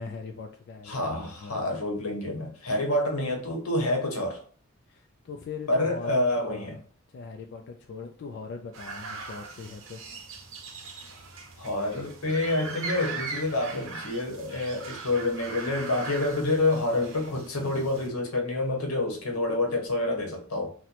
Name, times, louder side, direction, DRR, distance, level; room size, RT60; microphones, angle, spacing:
voice 1, 0.0-1.6 4.9-6.2 6.5-6.8 7.1-10.0, left 4 dB, 55° left, 0.3 m, -40 dB
voice 2, 0.8-4.4 5.7-6.8 11.6-20.7, left 2 dB, 90° left, 0.9 m, -28 dB
sound 1, 8.7-18.1, right 4 dB, 60° right, 0.7 m, -40 dB
2.9 x 2.1 x 4.0 m
head